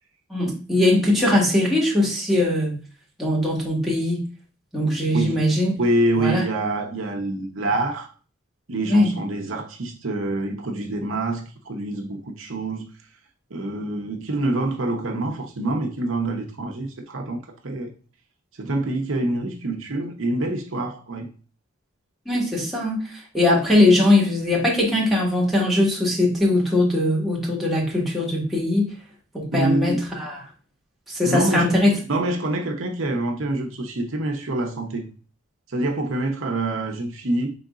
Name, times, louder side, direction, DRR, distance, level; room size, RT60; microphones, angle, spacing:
voice 1, 0.3-2.8 3.2-4.2 4.7-5.7 6.2-6.4 8.9-9.1 22.2-28.9 29.3-30.4 31.1-31.9, left 1 dB, ahead, 1.6 m, -20 dB
voice 2, 5.1-5.4 5.8-8.1 8.7-12.9 13.5-17.9 18.6-21.3 29.5-30.0 31.2-31.7 32.1-35.1 35.7-37.5, right 2 dB, 75° right, 0.8 m, -26 dB
5.1 x 3.8 x 2.4 m
head